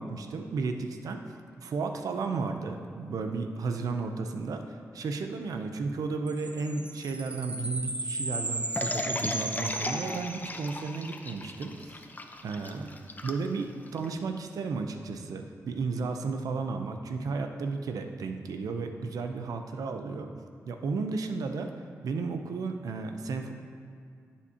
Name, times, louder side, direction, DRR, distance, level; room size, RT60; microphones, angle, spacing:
voice 1, 0.0-12.0 12.4-12.9 13.2-20.3 20.7-21.7 22.0-23.5, right 4 dB, 80° right, 6 dB, 0.6 m, -33 dB
sound 1, 6.3-10.9, right 2 dB, 20° right, 0.6 m, -35 dB
sound 2, 8.8-14.1, left 2 dB, 30° left, 0.7 m, -37 dB
11.0 x 7.3 x 2.9 m, 2.3 s
cardioid pair, 60°, 6 cm